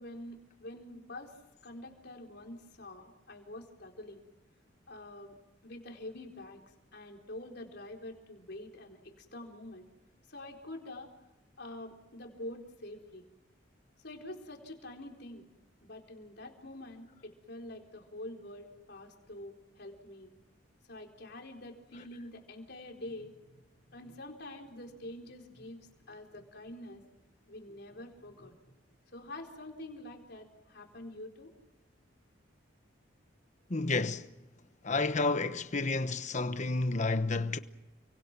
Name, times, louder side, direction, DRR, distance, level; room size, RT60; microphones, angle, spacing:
voice 1, 0.0-1.4 1.6-4.2 4.9-5.4 5.6-9.9 10.3-11.1 11.6-13.2 14.0-15.4 15.8-20.3 20.9-27.0 27.5-28.8 29.1-31.5, left 1 dB, 60° left, 4.2 m, -46 dB
voice 2, 33.7-34.3 34.8-37.6, left 3 dB, 40° left, 1.1 m, -30 dB
29.5 x 24.0 x 6.1 m
head